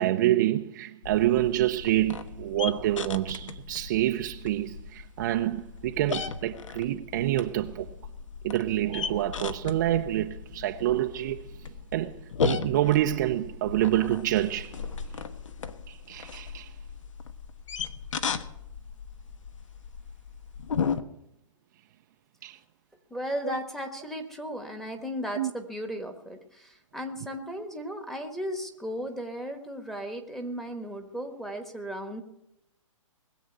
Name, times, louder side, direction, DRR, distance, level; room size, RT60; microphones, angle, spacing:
voice 1, 0.0-7.9 8.4-14.9 15.9-16.8 22.4-22.6 23.4-23.6 25.4-25.5, right 14 dB, 35° right, 0.6 m, -27 dB
sound 1, 1.0-21.0, left 6 dB, 65° left, 1.2 m, -36 dB
voice 2, 23.1-32.2, equal, ahead, 1.3 m, -35 dB
20.0 x 7.7 x 7.9 m
hypercardioid pair, 150°, 17 cm